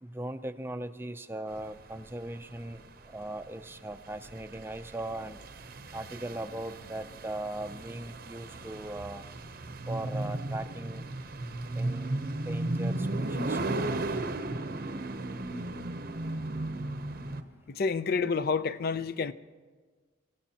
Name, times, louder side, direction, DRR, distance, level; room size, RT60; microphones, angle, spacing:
voice 1, 0.0-5.4 5.9-9.2 9.9-11.0 11.7-13.8, right 1 dB, 10° right, 0.5 m, -39 dB
sound 1, 1.6-17.4, right 2 dB, 50° right, 0.7 m, -35 dB
voice 2, 17.7-19.3, left 5 dB, 50° left, 0.5 m, -29 dB
27.0 x 16.5 x 2.9 m
head